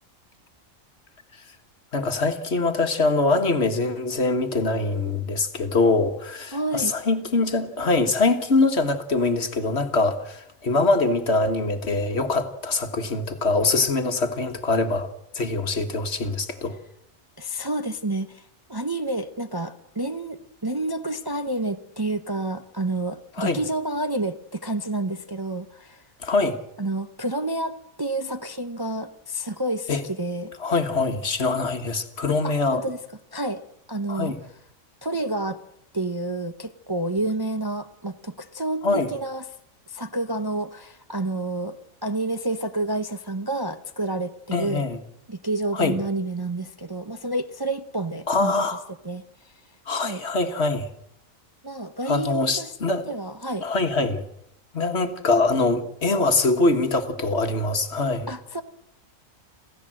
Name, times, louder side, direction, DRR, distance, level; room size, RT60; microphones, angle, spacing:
voice 1, 1.9-15.1 15.3-16.8 23.4-23.6 26.2-26.6 29.9-30.0 30.6-32.8 34.1-34.4 38.8-39.1 44.5-45.0 45.7-46.0 48.3-48.8 49.9-50.9 52.1-53.0 53.6-54.2 54.7-58.3, left 3 dB, 50° left, 1.8 m, -23 dB
voice 2, 6.5-7.0 17.4-26.0 26.8-30.5 32.4-33.0 33.3-33.6 33.9-34.3 35.0-35.6 35.9-39.4 39.9-41.8 42.0-44.9 45.3-48.6 49.0-49.5 50.0-50.2 51.6-52.7 53.1-53.7 58.3-58.6, right 2 dB, 20° right, 0.7 m, -29 dB
27.5 x 16.0 x 7.7 m
omnidirectional pair, 1.4 m